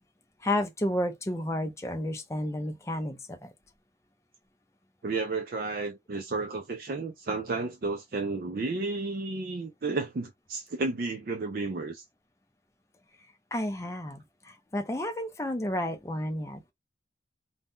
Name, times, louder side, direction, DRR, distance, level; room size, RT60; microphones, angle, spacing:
voice 1, 0.4-3.5 13.5-16.7, left 1 dB, 15° left, 0.5 m, -31 dB
voice 2, 5.0-12.0, right 3 dB, 50° right, 0.4 m, -32 dB
2.6 x 2.2 x 3.6 m
head